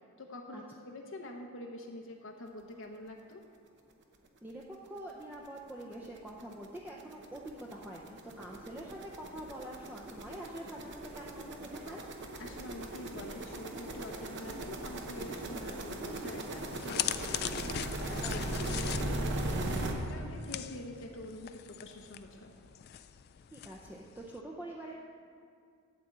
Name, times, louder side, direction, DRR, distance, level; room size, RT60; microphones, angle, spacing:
voice 1, 0.2-3.4 12.4-18.4 18.7-22.5, left 1 dB, 65° left, 1 dB, 0.7 m, -46 dB
voice 2, 4.4-12.0 18.2-18.5 23.5-25.0, right 1 dB, 10° right, -3 dB, 0.6 m, -45 dB
sound 1, 4.5-4.6 5.0-5.1 5.3-19.9, right 1 dB, 55° right, 0.9 m, -38 dB
sound 2, 16.7-24.4, left 11 dB, 50° left, 0.3 m, -41 dB
12.0 x 4.3 x 7.9 m, 2.3 s
head